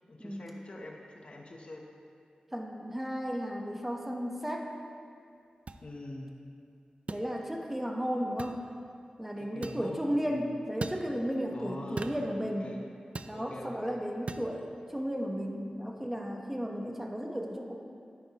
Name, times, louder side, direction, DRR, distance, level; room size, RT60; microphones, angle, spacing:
voice 1, 0.1-1.9 5.8-6.3 9.4-10.0 10.3-10.5 11.5-12.9 13.3-14.0, left 1 dB, 45° left, 0 dB, 0.9 m, -44 dB
voice 2, 2.5-4.7 7.1-8.7 9.2-12.7 13.2-17.8, equal, 10° right, 1 dB, 1.0 m, -34 dB
sound 1, 5.7-5.8 7.1-7.3 8.4-8.6 9.6-9.8 10.8-11.0 12.0-12.2 13.1-13.4 14.3-14.5, right 3 dB, 50° right, 0.4 m, -38 dB
10.0 x 9.1 x 2.9 m, 2.4 s
wide cardioid pair, 80°, 3 cm